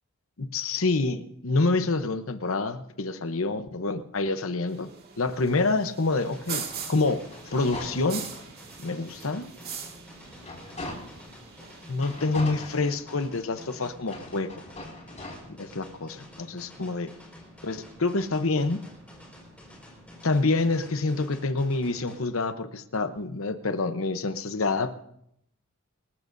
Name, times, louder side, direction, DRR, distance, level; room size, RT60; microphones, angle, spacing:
voice 1, 0.4-4.9 5.2-6.6 6.9-8.2 8.8-9.5 11.9-14.5 15.6-17.1 17.6-18.8 20.2-24.9, left 3 dB, 65° left, 9 dB, 0.9 m, -27 dB
sound 1, 4.7-12.8, right 7 dB, 45° right, 2.0 m, -42 dB
sound 2, 6.2-22.2, left 1 dB, 5° left, 5.0 m, -49 dB
sound 3, 6.9-8.5 9.0-9.1 9.6-11.3 11.9-13.4 14.0-15.3, left 2 dB, 35° left, 5.6 m, -41 dB
27.5 x 15.0 x 2.7 m, 0.75 s
head